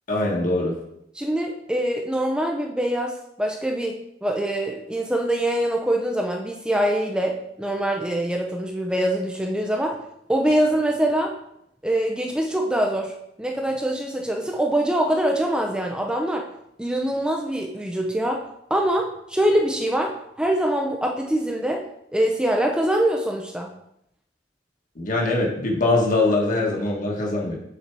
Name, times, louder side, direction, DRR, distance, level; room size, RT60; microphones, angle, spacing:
voice 1, 0.1-0.7 24.9-27.6, left 2 dB, 50° left, -1 dB, 1.5 m, -22 dB
voice 2, 1.2-9.9 10.3-11.3 11.8-16.4 16.8-18.4 18.7-21.8 22.1-23.7, right 1 dB, 5° right, 1 dB, 0.5 m, -24 dB
6.6 x 4.3 x 4.6 m, 0.77 s
head